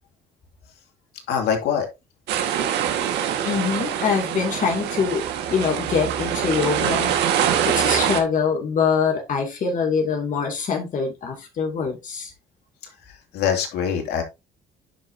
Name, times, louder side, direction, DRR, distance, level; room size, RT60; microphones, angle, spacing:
voice 1, 1.3-1.9 13.3-14.2, left 8 dB, 75° left, 3 dB, 2.5 m, -23 dB
sound 1, 2.3-8.2, right 9 dB, 85° right, 1.6 m, -24 dB
voice 2, 3.1-12.3, left 6 dB, 50° left, 2 dB, 2.5 m, -24 dB
10.0 x 5.2 x 2.8 m, 0.23 s
cardioid pair, 110°, 17 cm